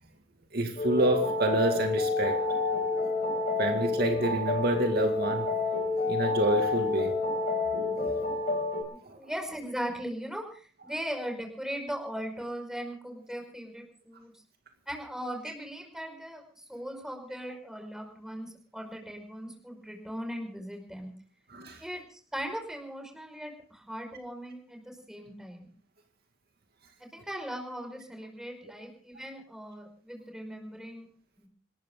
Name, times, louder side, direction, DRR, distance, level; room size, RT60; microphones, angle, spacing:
voice 1, 0.5-2.4 3.6-5.5 6.1-7.1 8.1-8.2 9.0-9.2 21.5-21.8, right 1 dB, 55° right, 4 dB, 2.2 m, -28 dB
sound 1, 0.8-8.8, left 3 dB, 45° left, 6.6 m, -29 dB
voice 2, 8.9-14.3 14.9-21.1 21.8-25.7 27.0-31.1 31.4-31.5, equal, 5° right, 3 dB, 5.3 m, -39 dB
27.0 x 13.5 x 3.8 m, 0.42 s
head